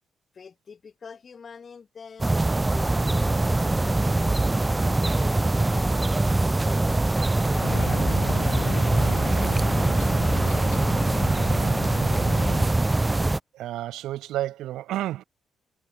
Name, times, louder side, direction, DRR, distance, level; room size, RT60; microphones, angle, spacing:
voice 1, 0.3-2.4 2.7-4.4 4.8-6.9 7.3-8.9, left 5 dB, 40° left, 1.5 m, -44 dB
sound 1, 2.2-13.4, right 2 dB, 15° right, 0.3 m, -23 dB
sound 2, 7.6-12.7, left 15 dB, 90° left, 1.0 m, -36 dB
voice 2, 13.5-15.2, right 14 dB, 85° right, 1.4 m, -30 dB
cardioid pair, 90°, 0 cm